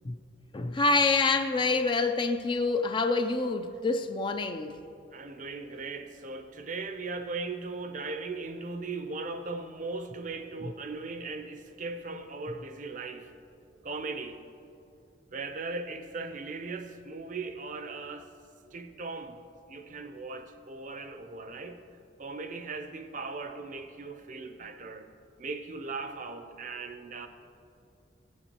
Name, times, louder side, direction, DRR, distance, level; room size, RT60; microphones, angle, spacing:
voice 1, 0.5-4.8, left 3 dB, 25° left, 0.4 m, -26 dB
voice 2, 5.1-13.3 13.8-14.4 15.3-18.3 18.7-19.4 19.7-21.8 22.2-25.1 25.4-27.3, right 3 dB, 45° right, 0.6 m, -38 dB
15.5 x 8.2 x 2.9 m
head